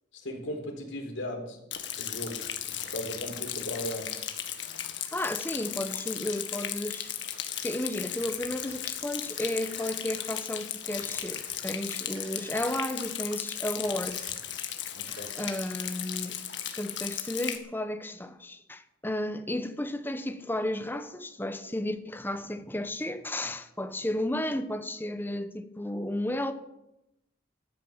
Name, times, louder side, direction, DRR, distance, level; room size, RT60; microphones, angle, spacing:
voice 1, 0.1-1.6 2.0-4.1 14.9-15.4, left 1 dB, 85° left, 4.0 m, -37 dB
Rain, 1.7-17.6, left 10 dB, 65° left, 1.8 m, -36 dB
voice 2, 5.1-7.1 7.6-14.3 15.4-16.4 16.7-26.5, left 1 dB, 10° left, 1.1 m, -33 dB
Telephone, 8.2-8.9 9.2-10.3 11.0-13.1 13.7-14.5 15.0-16.0, right 3 dB, 85° right, 7.6 m, -51 dB
13.5 x 12.5 x 7.4 m
head